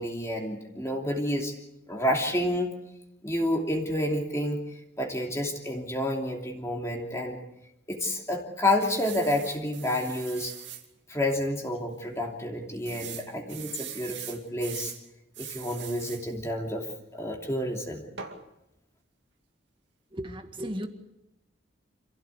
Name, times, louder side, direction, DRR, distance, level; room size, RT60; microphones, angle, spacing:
voice 1, 0.0-1.5 1.9-2.7 3.2-7.4 7.9-10.5 11.1-14.9 15.4-16.9 17.1-18.0, left 1 dB, 15° left, 0 dB, 2.8 m, -29 dB
sound 1, 8.8-10.8 11.4-11.5 11.8-11.9 12.9-15.0 15.3-16.2 18.2-18.4, right 9 dB, 60° right, 2.4 m, -41 dB
voice 2, 20.1-20.9, equal, 25° right, 6 dB, 1.9 m, -35 dB
27.5 x 16.0 x 8.3 m, 0.86 s
head